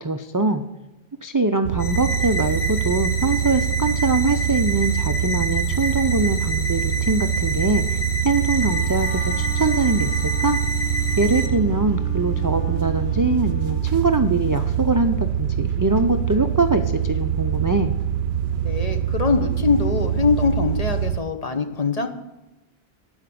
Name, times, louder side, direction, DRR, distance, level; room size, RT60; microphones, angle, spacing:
voice 1, 0.0-0.6 1.2-8.0 8.2-10.6 11.2-17.9, right 3 dB, 30° right, 7 dB, 0.3 m, -23 dB
sound 1, 1.6-21.2, right 9 dB, 75° right, 0.8 m, -24 dB
sound 2, 1.8-11.5, right 1 dB, 85° left, 1.4 m, -29 dB
Wind instrument woodwind instrument, 8.3-13.8, left 5 dB, 60° right, 3.7 m, -39 dB
voice 2, 18.6-22.1, left 4 dB, 40° left, 7 dB, 0.9 m, -23 dB
12.0 x 5.0 x 8.5 m, 1.0 s
omnidirectional pair, 1.1 m